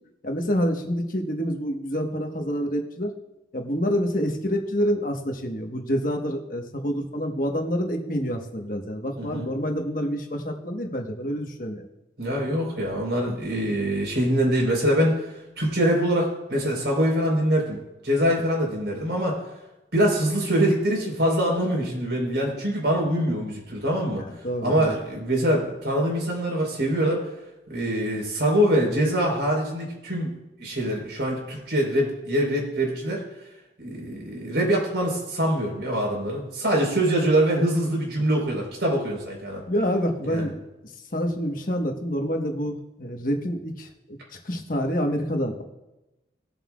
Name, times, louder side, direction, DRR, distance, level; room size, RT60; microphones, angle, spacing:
voice 1, 0.2-3.1 3.5-11.8 24.2-24.9 39.7-40.6 41.1-44.2 44.4-45.6, equal, 50° left, 3 dB, 1.3 m, -27 dB
voice 2, 9.2-9.5 12.2-15.2 15.6-17.8 18.0-19.4 19.9-24.2 24.6-27.2 27.7-30.3 30.6-33.2 33.8-39.6 40.3-40.5, right 1 dB, 80° right, -1 dB, 4.2 m, -24 dB
20.0 x 7.5 x 2.4 m, 0.97 s
head